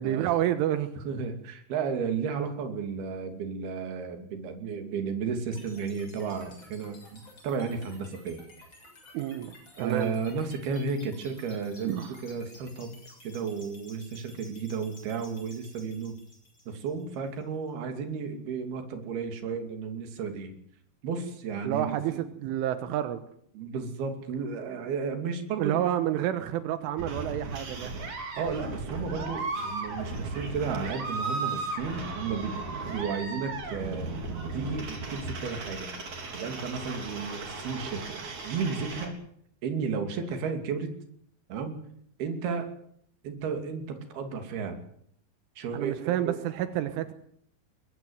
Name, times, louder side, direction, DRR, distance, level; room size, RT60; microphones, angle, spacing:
voice 1, 0.0-0.9 9.1-10.1 11.8-12.2 21.6-23.3 25.6-27.9 45.7-47.1, right 12 dB, 85° right, 10 dB, 3.7 m, -29 dB
voice 2, 1.1-8.4 9.8-12.0 12.2-12.9 13.2-16.2 16.7-20.5 21.0-22.2 23.5-25.8 28.4-32.6 32.9-34.1 34.5-35.9 36.3-39.1 39.6-40.9 41.5-41.8 42.2-42.7 43.2-44.8 45.6-46.0 46.2-46.4, right 5 dB, 55° right, 6 dB, 4.4 m, -33 dB
sound 1, 5.5-17.5, left 2 dB, 25° left, 7.8 m, -53 dB
sound 2, 27.0-39.1, right 3 dB, 40° right, 4.7 m, -36 dB
22.5 x 17.0 x 9.4 m, 0.67 s
omnidirectional pair, 5.5 m